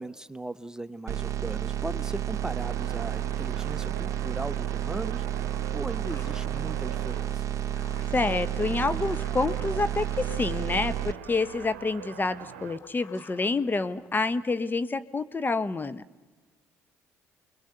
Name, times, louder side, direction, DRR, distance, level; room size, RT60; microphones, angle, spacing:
voice 1, 0.0-5.2 5.7-7.4, right 1 dB, 10° right, 13 dB, 0.9 m, -38 dB
sound 1, 1.1-11.1, right 11 dB, 50° right, 0.9 m, -31 dB
sound 2, 1.7-12.8, right 10 dB, 75° right, 0.8 m, -44 dB
sound 3, 5.3-14.3, left 3 dB, 50° left, 7.3 m, -54 dB
voice 2, 8.1-16.0, left 3 dB, 25° left, 11 dB, 1.0 m, -28 dB
29.5 x 22.0 x 6.8 m, 1.3 s
hypercardioid pair, 50°, 7 cm